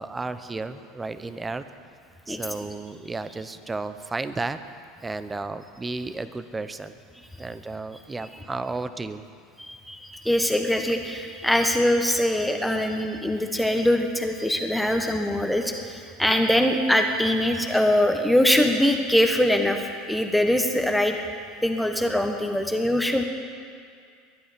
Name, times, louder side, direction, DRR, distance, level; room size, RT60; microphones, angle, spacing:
voice 1, 0.0-1.6 2.3-4.6 5.0-7.0 7.4-9.2, right 3 dB, 15° right, 11 dB, 0.9 m, -33 dB
voice 2, 2.3-2.6 8.2-8.4 9.6-21.2 21.6-23.2, left 1 dB, 5° left, 4 dB, 1.4 m, -23 dB
22.0 x 10.5 x 5.3 m, 2.2 s
hypercardioid pair, 95°, 0 cm